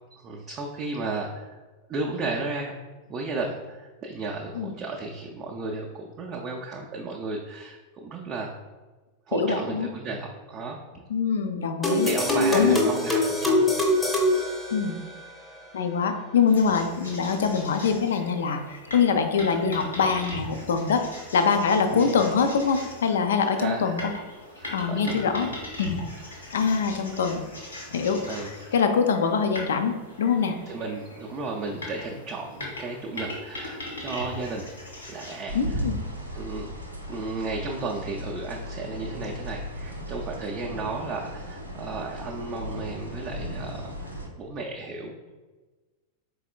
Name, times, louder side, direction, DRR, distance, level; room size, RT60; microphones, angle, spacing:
voice 1, 0.2-1.6 1.9-2.8 3.1-8.5 9.3-11.0 12.0-13.7 21.9-22.1 23.5-24.0 24.6-25.5 26.2-26.3 26.8-26.9 28.2-28.8 30.7-34.7 35.1-35.8 36.3-36.7 37.1-44.1 44.4-45.3, right 3 dB, 30° right, -1 dB, 0.4 m, -34 dB
voice 2, 9.3-9.9 11.1-12.1 12.5-12.8 14.7-15.0 15.7-21.0 21.3-24.1 24.7-25.5 25.8-26.0 26.5-27.4 27.9-28.4 28.7-29.9 30.2-30.6 35.5-35.9, left 6 dB, 65° left, 7 dB, 0.3 m, -24 dB
sound 1, 11.8-15.3, left 2 dB, 10° left, 0.6 m, -24 dB
sound 2, 16.5-35.4, left 1 dB, 80° left, 0.9 m, -40 dB
sound 3, 35.5-44.3, equal, 90° right, 0.5 m, -36 dB
4.2 x 3.2 x 2.3 m, 1.3 s
figure-of-eight pair, 90°, 0 cm